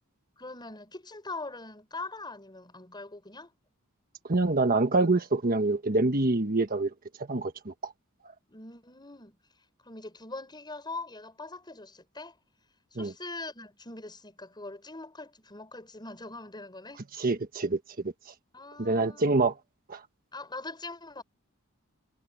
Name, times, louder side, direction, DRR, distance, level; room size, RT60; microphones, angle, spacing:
voice 1, 0.4-3.5 8.5-9.4 9.8-12.4 12.9-17.0 18.5-19.4 20.3-21.2, left 3 dB, 20° left, 6.3 m, -42 dB
voice 2, 4.3-6.9 7.3-7.9 13.0-13.1 17.2-17.8 18.8-19.5 19.9-20.0, right 2 dB, 40° right, 1.3 m, -25 dB
head